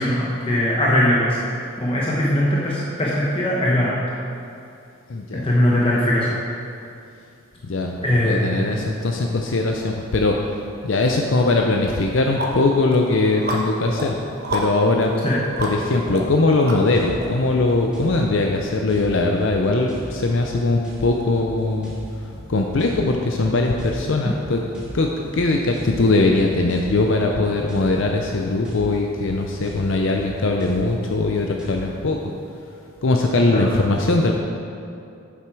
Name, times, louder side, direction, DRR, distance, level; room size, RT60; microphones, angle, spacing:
voice 1, 0.0-1.4 1.8-3.9 5.3-6.3 8.0-8.8 15.2-15.4 33.5-33.7, left 1 dB, 25° left, -5 dB, 0.9 m, -20 dB
voice 2, 5.1-5.5 7.6-10.4 10.8-14.1 14.5-15.1 15.6-24.6 24.9-25.1 25.3-32.2 33.0-34.3, left 2 dB, 60° left, 1 dB, 0.5 m, -20 dB
sound 1, 11.3-11.4 11.9-17.2, right 1 dB, 45° right, 1.2 m, -31 dB
sound 2, 16.9-31.8, equal, 5° right, 1.9 m, -39 dB
7.5 x 7.2 x 4.7 m, 2.5 s
head